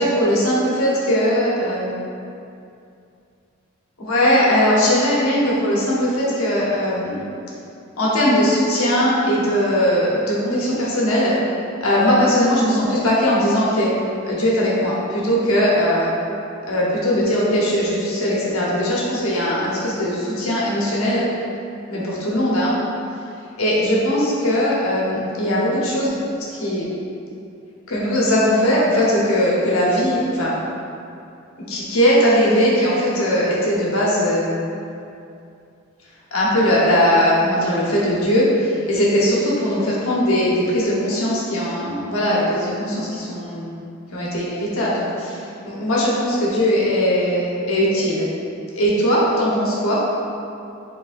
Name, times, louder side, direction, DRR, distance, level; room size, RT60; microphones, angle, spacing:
voice 1, 0.0-2.0 4.0-7.3 8.0-11.4 11.8-13.9 14.2-16.1 16.7-21.3 21.9-22.7 23.6-26.2 26.5-26.9 27.9-30.5 31.6-34.6 36.3-43.8 44.1-48.3 48.7-50.0, equal, 85° left, -6 dB, 1.0 m, -19 dB
4.8 x 3.5 x 2.5 m, 2.5 s
head